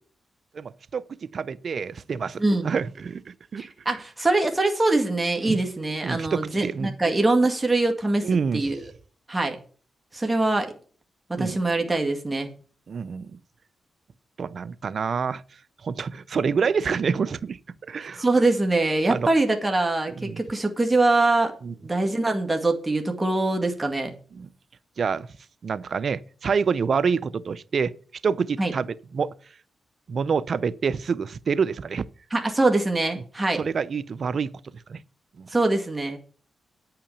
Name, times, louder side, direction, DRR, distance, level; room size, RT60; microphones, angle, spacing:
voice 1, 0.5-1.1 1.3-3.7 5.4-5.6 6.0-6.9 8.2-8.6 11.4-11.6 12.9-13.4 14.4-15.4 15.8-17.6 17.9-18.2 19.1-19.3 20.1-20.4 21.6-21.7 24.3-24.5 25.0-25.3 25.6-27.9 28.2-29.3 30.1-32.1 33.6-34.5 34.9-35.0 35.4-35.5, right 5 dB, 60° right, 0.5 m, -27 dB
voice 2, 2.4-2.7 3.6-8.8 9.3-9.6 10.1-10.7 11.4-12.5 18.2-21.5 21.8-24.1 28.6-28.7 32.3-33.6 35.5-36.2, right 2 dB, 15° right, 2.0 m, -23 dB
9.4 x 5.8 x 7.0 m
cardioid pair, 65°, 0 cm